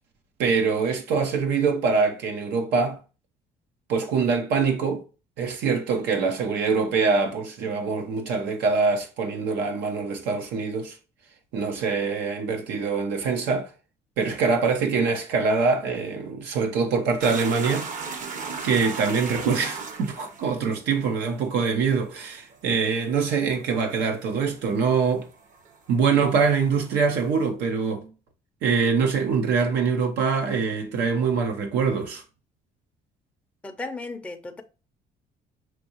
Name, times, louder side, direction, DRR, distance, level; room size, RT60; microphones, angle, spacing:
voice 1, 0.4-3.0 3.9-5.0 5.4-11.0 11.5-13.7 14.2-17.9 18.6-25.3 25.9-28.1 28.6-32.2, right 5 dB, 85° right, 0.9 m, -24 dB
sound 1, 17.2-25.7 26.0-27.4, right 4 dB, 50° right, 0.9 m, -35 dB
voice 2, 33.6-34.6, left 3 dB, 5° left, 0.5 m, -35 dB
6.0 x 2.8 x 2.9 m
cardioid pair, 110°, 17 cm